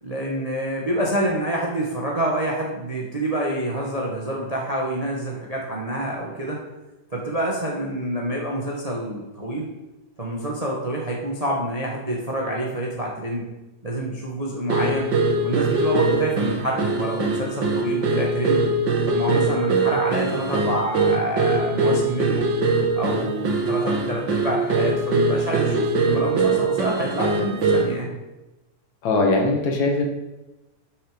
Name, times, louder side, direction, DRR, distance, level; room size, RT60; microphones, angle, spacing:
voice 1, 0.0-6.6 7.1-9.7 10.2-13.5 13.8-15.1 15.4-18.6 19.1-22.5 22.9-28.1, right 1 dB, 30° right, -2 dB, 0.6 m, -27 dB
sound 1, 14.7-28.0, right 3 dB, 50° right, 1.4 m, -22 dB
voice 2, 29.0-30.1, left 2 dB, 60° left, 1 dB, 2.7 m, -20 dB
12.0 x 6.8 x 5.3 m, 1.0 s
omnidirectional pair, 4.0 m